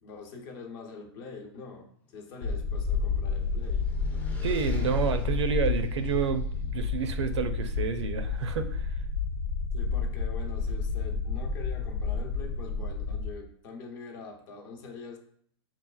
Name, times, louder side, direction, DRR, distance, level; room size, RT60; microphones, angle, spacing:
voice 1, 0.0-3.9 9.7-15.2, left 4 dB, 50° left, 0.8 m, -44 dB
sound 1, 1.8-6.6, left 4 dB, 10° left, 0.4 m, -48 dB
sound 2, 2.4-13.3, left 4 dB, 75° left, 0.4 m, -30 dB
voice 2, 4.4-8.9, right 6 dB, 85° right, 0.5 m, -29 dB
5.6 x 2.4 x 2.3 m
hypercardioid pair, 130°, 14 cm